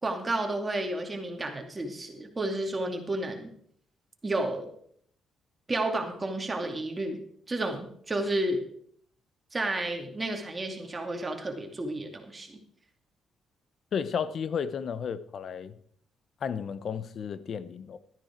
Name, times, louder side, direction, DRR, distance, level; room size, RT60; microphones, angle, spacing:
voice 1, 0.0-3.5 4.2-4.7 5.7-7.2 7.5-8.6 9.5-12.6, right 2 dB, 25° right, 2.5 m, -31 dB
voice 2, 13.9-15.7 16.4-18.0, left 7 dB, 55° left, 0.8 m, -33 dB
13.0 x 10.0 x 4.6 m
cardioid pair, 90°, 0 cm